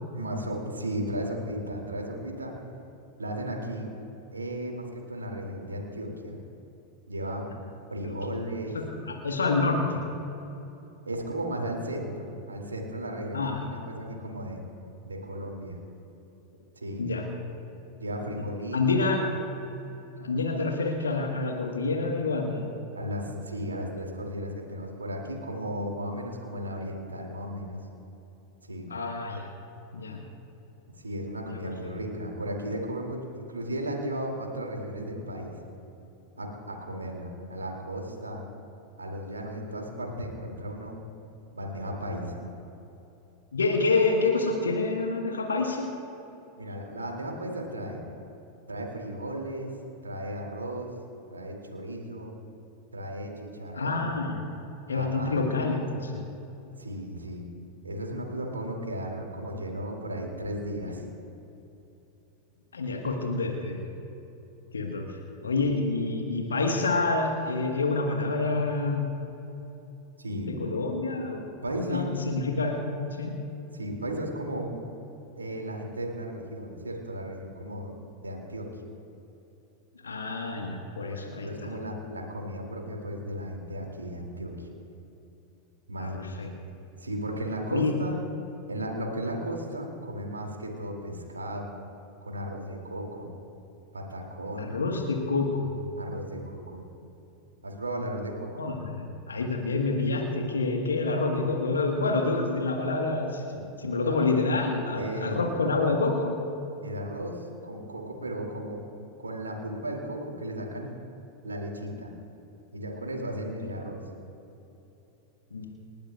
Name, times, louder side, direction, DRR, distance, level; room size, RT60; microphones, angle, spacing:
voice 1, 0.1-2.5 3.2-3.9 4.3-6.4 7.1-7.5 7.9-8.8 11.1-14.6 15.0-15.8 16.7-17.0 18.0-19.1 23.0-27.8 28.6-28.9 31.0-35.6 36.4-38.5 39.0-41.0 41.5-42.4 46.6-48.0 48.7-49.7 50.0-50.9 51.3-52.4 52.9-54.0 54.9-55.6 56.7-57.4 57.8-61.0 70.2-70.5 71.6-72.1 73.7-74.7 75.3-78.0 78.2-78.7 81.3-84.7 85.9-86.3 87.0-88.2 88.7-91.7 92.2-93.3 93.9-94.7 96.0-96.8 97.6-98.7 103.5-103.6 104.0-104.2 104.9-105.4 106.8-108.8 109.2-110.9 111.4-112.1 112.7-114.0, right 1 dB, 75° right, 1 dB, 2.5 m, -35 dB
voice 2, 8.7-10.0 13.3-13.6 17.0-17.3 18.7-19.2 20.2-22.6 28.9-29.5 29.9-30.2 31.5-31.7 43.5-45.9 53.7-54.4 54.9-56.2 62.7-63.8 64.7-65.2 65.4-69.1 70.3-71.4 71.9-72.9 73.2-73.4 80.0-81.7 86.0-86.5 87.7-87.9 94.6-95.8 98.6-103.4 103.8-106.3 115.5-115.7, left 3 dB, 75° left, 1 dB, 1.3 m, -27 dB
29.0 x 12.0 x 2.4 m, 3.0 s
figure-of-eight pair, 90°, 0 cm